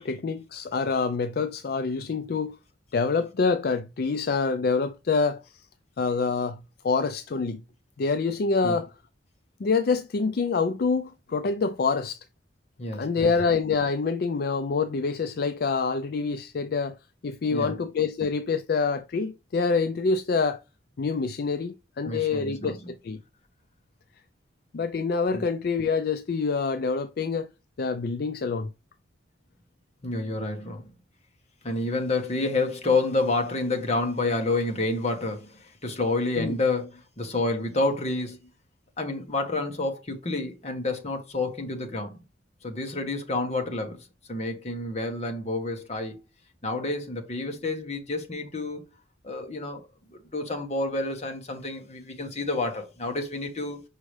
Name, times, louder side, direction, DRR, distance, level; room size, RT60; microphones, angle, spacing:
voice 1, 0.0-2.6 2.9-5.7 6.0-7.6 8.0-8.9 9.6-12.2 12.9-17.0 17.2-20.6 21.0-23.2 24.7-27.5 27.8-28.7 36.4-36.6, left 4 dB, 50° left, 0.4 m, -26 dB
voice 2, 12.8-13.3 17.5-17.8 22.0-22.7 25.3-25.4 30.0-30.9 31.6-38.4 39.0-42.2 42.6-46.2 46.6-48.9 49.2-49.8 50.2-53.8, left 2 dB, 35° left, 1.2 m, -29 dB
6.3 x 4.8 x 3.2 m
head